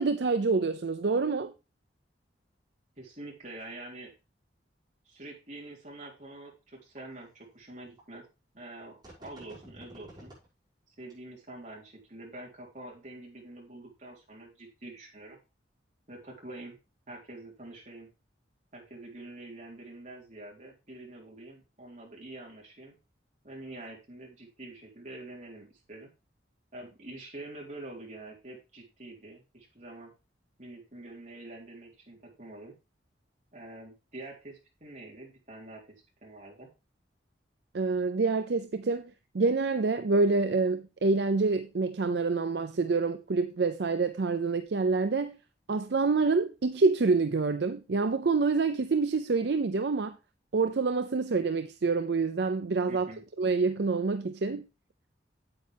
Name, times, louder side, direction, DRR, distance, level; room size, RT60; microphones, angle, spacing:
voice 1, 0.0-1.5 37.7-39.1 39.3-45.4 45.7-50.2 50.5-53.1 53.4-54.7, right 4 dB, 65° right, 0.5 m, -27 dB
voice 2, 3.0-4.1 5.1-8.3 8.5-10.3 11.0-15.4 16.1-16.8 17.1-18.1 18.7-22.9 23.4-26.1 26.7-30.1 30.6-32.7 33.5-36.0 36.2-36.7 52.9-53.2, right 2 dB, 40° right, 3.9 m, -46 dB
sound 1, 6.0-6.1 7.0-7.1 8.0-8.1 9.0-10.4 11.0-11.1, right 1 dB, 25° right, 5.8 m, -49 dB
8.8 x 8.5 x 3.4 m
head